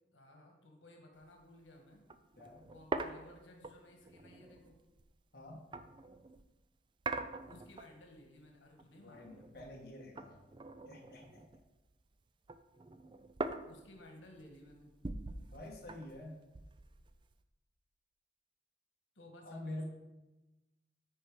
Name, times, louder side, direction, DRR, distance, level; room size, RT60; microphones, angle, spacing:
voice 1, 0.1-2.1 2.7-4.8 7.5-9.6 13.6-14.9 19.1-19.9, left 1 dB, 85° left, 2 dB, 1.5 m, -57 dB
sound 1, 1.2-1.4 1.7-1.8 2.1-6.5 7.0-8.2 8.5-9.9 10.2-11.9 12.2-17.4, right 3 dB, 25° right, 0.3 m, -44 dB
voice 2, 5.3-5.6 9.0-10.4 10.9-11.4 15.5-16.4 19.4-19.9, left 1 dB, 50° left, -2 dB, 1.4 m, -47 dB
9.8 x 4.5 x 4.9 m, 1.0 s
head